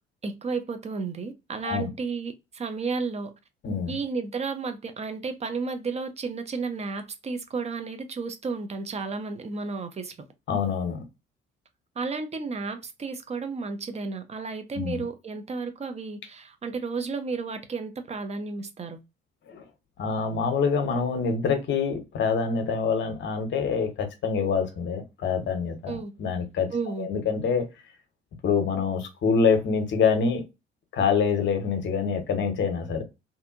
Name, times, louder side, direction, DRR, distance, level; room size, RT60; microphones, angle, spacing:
voice 1, 0.2-3.3 3.9-10.1 12.0-19.0 25.9-26.1 26.7-27.1, right 4 dB, 20° right, 0.6 m, -32 dB
voice 2, 3.6-3.9 10.5-11.0 14.8-15.0 19.5-19.6 20.0-26.7 27.0-27.7 28.4-30.4 30.9-33.0, left 5 dB, 40° left, 0.8 m, -25 dB
2.7 x 2.5 x 2.5 m
figure-of-eight pair, 50°, 30 cm